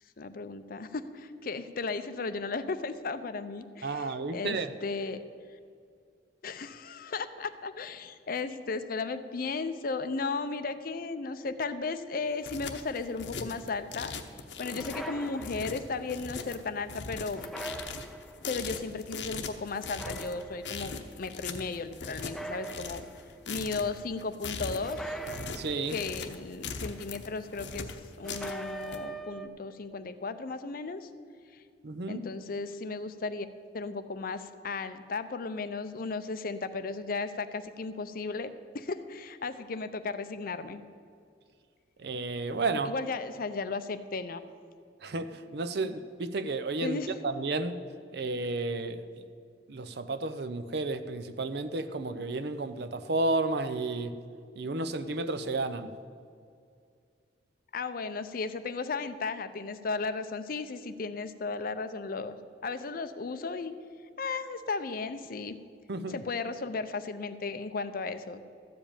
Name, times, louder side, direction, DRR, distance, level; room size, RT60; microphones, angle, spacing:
voice 1, 0.2-4.6 4.8-5.2 6.4-14.1 14.6-17.5 18.5-23.0 23.5-25.2 25.9-27.9 28.2-31.1 31.5-31.6 32.1-33.5 33.7-40.8 42.8-44.4 46.8-47.1 57.7-62.4 62.6-63.7 64.2-65.6 66.1-68.4, left 4 dB, 50° left, 11 dB, 0.5 m, -35 dB
voice 2, 3.8-4.7 25.5-26.0 31.8-32.3 42.0-42.9 45.0-47.8 48.1-49.1 49.7-54.1 54.6-55.9 65.9-66.2, right 3 dB, 60° right, 11 dB, 0.6 m, -32 dB
sound 1, 12.2-29.0, left 5 dB, 75° left, 0.9 m, -40 dB
sound 2, 14.8-16.0 17.4-18.5 19.8-20.8 22.2-23.4 24.8-26.2 28.2-29.5, right 2 dB, ahead, 0.4 m, -41 dB
13.5 x 5.1 x 8.7 m, 2.3 s
head